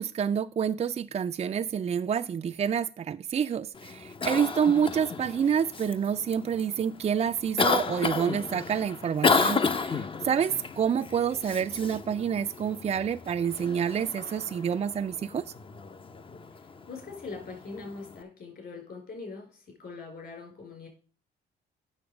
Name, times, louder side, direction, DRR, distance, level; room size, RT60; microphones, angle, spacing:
voice 1, 0.0-15.5, right 7 dB, 35° right, 0.3 m, -28 dB
Cough, 3.7-18.2, left 4 dB, 25° left, 0.6 m, -33 dB
voice 2, 16.9-20.9, left 4 dB, 55° left, 5.1 m, -42 dB
8.6 x 6.3 x 5.0 m
cardioid pair, 90°, 20 cm